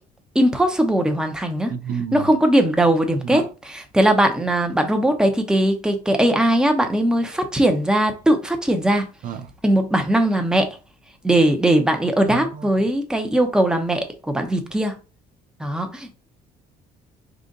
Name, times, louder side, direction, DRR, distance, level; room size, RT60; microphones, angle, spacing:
voice 1, 0.3-1.7 2.1-9.1 9.6-10.7 11.2-14.9 15.6-16.1, right 1 dB, 5° right, 0.7 m, -19 dB
voice 2, 1.7-2.3 3.2-3.5 9.2-9.5 12.3-12.7, right 7 dB, 55° right, 0.5 m, -30 dB
3.9 x 2.5 x 3.8 m
cardioid pair, 110°, 17 cm